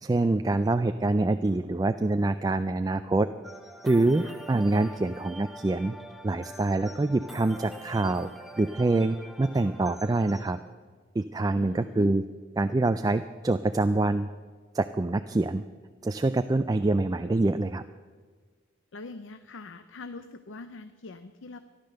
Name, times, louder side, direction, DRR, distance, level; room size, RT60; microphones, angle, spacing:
voice 1, 0.0-3.3 3.8-6.0 6.2-8.3 8.6-10.6 11.2-12.2 12.6-14.3 14.7-15.6 16.0-17.8, right 2 dB, 20° right, 10 dB, 0.3 m, -25 dB
sound 1, 3.4-10.6, equal, ahead, 0.8 m, -45 dB
voice 2, 11.5-12.1 18.9-21.6, left 3 dB, 70° left, 11 dB, 0.6 m, -43 dB
14.0 x 11.5 x 6.6 m, 1.5 s
head